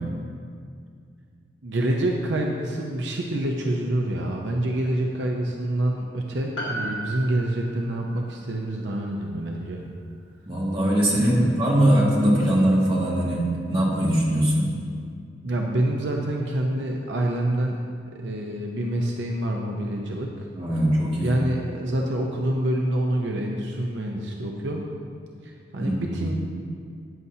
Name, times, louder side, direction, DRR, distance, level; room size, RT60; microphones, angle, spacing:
voice 1, 1.6-9.9 11.3-11.5 15.4-17.8 18.1-20.5 20.7-20.8 21.2-24.9 25.4-26.3, right 1 dB, 75° right, 0 dB, 0.8 m, -27 dB
Piano, 6.6-11.2 11.4-11.5, right 1 dB, 85° left, 2.0 m, -37 dB
voice 2, 10.4-14.7 20.5-21.4 25.8-26.2, right 1 dB, 30° right, -6 dB, 2.2 m, -21 dB
14.0 x 9.4 x 2.8 m, 2.2 s
head